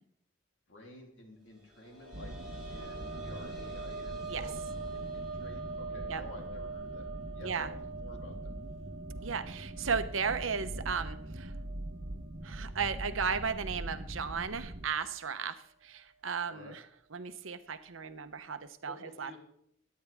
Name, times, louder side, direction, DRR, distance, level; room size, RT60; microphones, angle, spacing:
voice 1, 0.7-4.2 4.9-8.6 16.5-16.7 18.8-19.4, left 1 dB, 70° left, 0 dB, 3.4 m, -52 dB
sound 1, 1.5-13.0 13.3-13.4 14.9-15.0, right 4 dB, ahead, 5.8 m, -44 dB
sound 2, 2.1-14.9, right 1 dB, 45° right, 1.1 m, -43 dB
sound 3, 4.2-5.7 7.4-8.4 8.7-8.8 9.1-9.4, left 2 dB, 30° left, 0.6 m, -57 dB
voice 2, 9.2-11.5 12.4-16.8 17.1-19.4, right 6 dB, 80° right, 10 dB, 0.9 m, -35 dB
22.5 x 9.5 x 3.5 m, 0.70 s
head